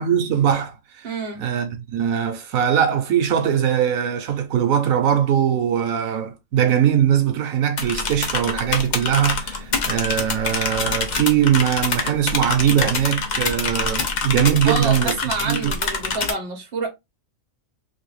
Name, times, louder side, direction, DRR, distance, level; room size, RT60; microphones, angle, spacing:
voice 1, 0.0-1.1 1.4-15.1 15.4-15.7, right 9 dB, 90° right, 1.1 m, -21 dB
voice 2, 1.0-1.4 14.6-16.9, right 4 dB, 45° right, 1.2 m, -28 dB
sound 1, 7.8-16.3, left 4 dB, 45° left, 0.6 m, -26 dB
3.1 x 2.6 x 3.1 m
omnidirectional pair, 1.4 m